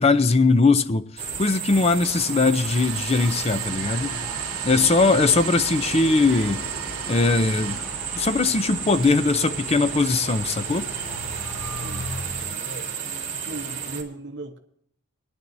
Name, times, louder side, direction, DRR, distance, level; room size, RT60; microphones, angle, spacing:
voice 1, 0.0-4.3 4.6-6.6 7.1-7.8 8.1-10.9, left 3 dB, 30° left, 0.5 m, -20 dB
sound 1, 1.2-14.0, right 6 dB, 40° right, 2.8 m, -32 dB
sound 2, 1.7-12.5, right 1 dB, ahead, 3.3 m, -40 dB
Domestic sounds home sounds, 2.5-8.4, right 9 dB, 90° right, 0.7 m, -38 dB
voice 2, 4.7-5.1 11.8-12.9 13.4-14.6, right 2 dB, 55° right, 0.9 m, -38 dB
21.5 x 10.0 x 2.7 m
head